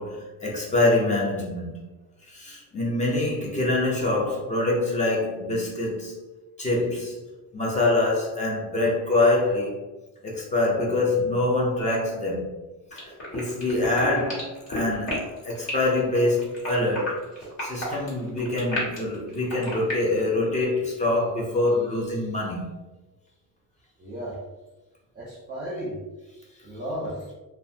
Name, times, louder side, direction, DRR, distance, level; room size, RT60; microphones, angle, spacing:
voice 1, 0.0-1.8 2.3-6.2 6.6-7.2 7.5-9.8 10.2-12.5 12.9-17.2 17.6-22.7, left 2 dB, 20° left, -3 dB, 0.5 m, -25 dB
sound 1, 12.9-19.9, left 1 dB, 45° left, 1.3 m, -32 dB
voice 2, 24.0-24.5 25.1-26.0 26.6-27.3, equal, 25° right, -6 dB, 0.6 m, -34 dB
2.9 x 2.1 x 2.6 m, 1.1 s
cardioid pair, 155°, 36 cm